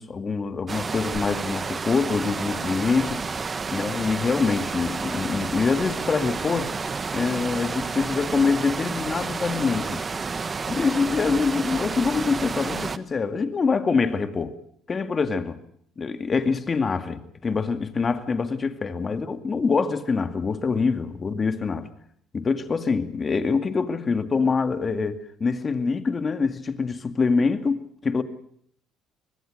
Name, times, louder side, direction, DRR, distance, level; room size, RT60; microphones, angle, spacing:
voice 1, 0.0-3.2 3.7-6.7 7.1-10.0 10.7-14.6 14.9-15.6 16.0-21.9 22.3-28.2, left 4 dB, 30° left, 2.3 m, -25 dB
sound 1, 0.7-13.0, right 4 dB, 30° right, 1.2 m, -30 dB
25.0 x 20.0 x 6.6 m
supercardioid pair, 90°, 0 cm